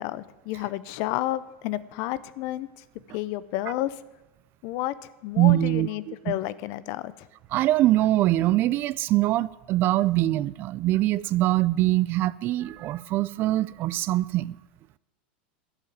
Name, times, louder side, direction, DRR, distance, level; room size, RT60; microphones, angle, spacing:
voice 1, 0.0-2.8 3.1-3.9 4.6-7.3, left 15 dB, 55° left, 0.6 m, -31 dB
voice 2, 5.4-6.3 7.5-14.6, right 15 dB, 40° right, 0.3 m, -23 dB
11.5 x 5.6 x 9.0 m
supercardioid pair, 125°, 6 cm